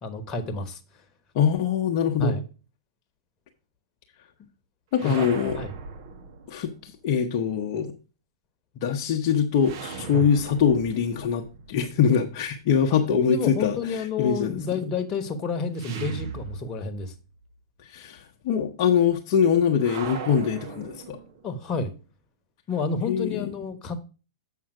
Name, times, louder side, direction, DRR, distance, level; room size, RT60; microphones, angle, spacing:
voice 1, 0.0-0.8 2.2-2.4 5.0-5.3 5.6-5.7 10.1-10.2 13.3-17.1 21.4-21.9 22.7-24.0, left 4 dB, 30° left, 1.2 m, -30 dB
voice 2, 1.3-2.4 4.9-5.6 6.5-7.9 8.8-14.6 17.8-21.2 23.0-23.5, left 7 dB, 45° left, 0.9 m, -23 dB
sound 1, 4.9-6.9 9.6-12.6 15.7-17.2 17.4-17.5 19.8-21.6, right 5 dB, 55° right, 1.5 m, -39 dB
7.4 x 5.6 x 4.7 m
hypercardioid pair, 110°, 2 cm